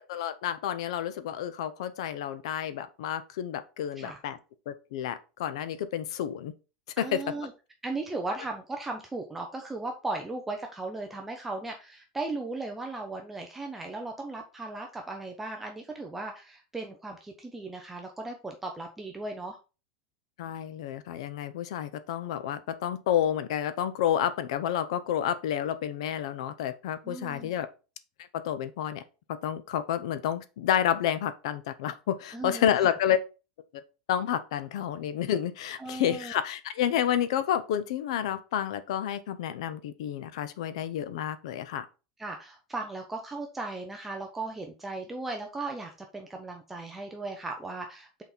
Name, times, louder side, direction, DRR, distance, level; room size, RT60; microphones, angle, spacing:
voice 1, 0.0-4.4 4.7-6.5 7.0-7.2 20.4-27.7 28.4-29.0 29.4-33.2 34.1-41.8, left 10 dB, 70° left, 0.6 m, -30 dB
voice 2, 7.0-7.5 7.8-19.6 27.0-27.5 32.3-32.7 35.8-36.3 42.2-48.2, right 2 dB, 5° right, 0.5 m, -37 dB
5.7 x 4.1 x 4.3 m
supercardioid pair, 180°, 3 cm